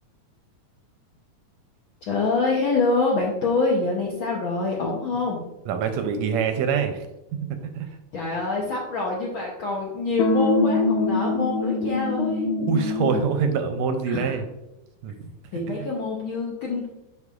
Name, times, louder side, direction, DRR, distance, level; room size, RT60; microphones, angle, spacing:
voice 1, 2.1-5.4 8.1-12.5 14.1-14.3 15.5-16.9, left 3 dB, 70° left, -2 dB, 1.2 m, -25 dB
voice 2, 5.7-7.1 7.6-8.0 12.7-14.5 15.0-15.9, right 6 dB, 80° right, 7 dB, 1.7 m, -25 dB
sound 1, 10.2-13.4, left 3 dB, 85° left, 1.3 m, -23 dB
9.6 x 4.8 x 2.4 m, 0.95 s
omnidirectional pair, 3.4 m